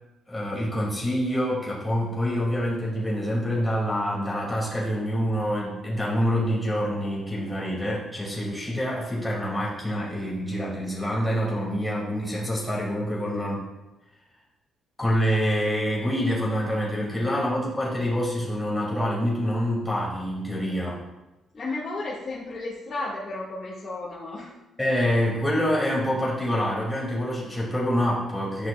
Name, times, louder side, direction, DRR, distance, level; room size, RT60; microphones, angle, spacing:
voice 1, 0.3-13.7 15.0-21.0 24.8-28.7, equal, 5° left, -6 dB, 2.5 m, -26 dB
voice 2, 16.9-17.3 21.5-24.5, left 2 dB, 40° left, -9 dB, 1.8 m, -33 dB
10.5 x 5.9 x 2.4 m, 1.0 s
cardioid pair, 90°, 0 cm